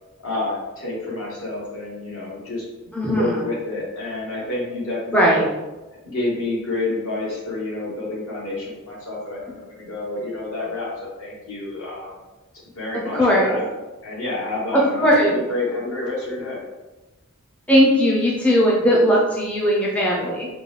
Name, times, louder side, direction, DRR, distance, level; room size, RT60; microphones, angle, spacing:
voice 1, 0.2-2.7 3.0-5.4 6.0-12.1 12.7-13.6 14.0-15.0 15.3-16.6, left 2 dB, 65° left, -5 dB, 1.3 m, -29 dB
voice 2, 2.9-3.4 5.1-5.4 13.1-13.6 14.7-15.4 17.7-20.5, equal, 5° left, -4 dB, 0.4 m, -18 dB
3.8 x 2.2 x 3.2 m, 1.1 s
head